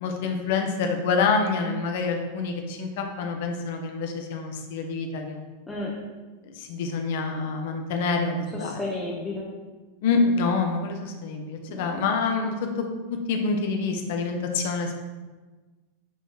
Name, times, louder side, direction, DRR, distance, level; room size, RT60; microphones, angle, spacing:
voice 1, 0.0-5.4 6.5-8.8 10.0-15.0, left 4 dB, 50° left, 4 dB, 0.6 m, -27 dB
voice 2, 8.5-9.5 11.7-11.9, left 2 dB, 10° left, -4 dB, 0.6 m, -32 dB
7.0 x 3.0 x 2.4 m, 1.3 s
figure-of-eight pair, 90°, 0 cm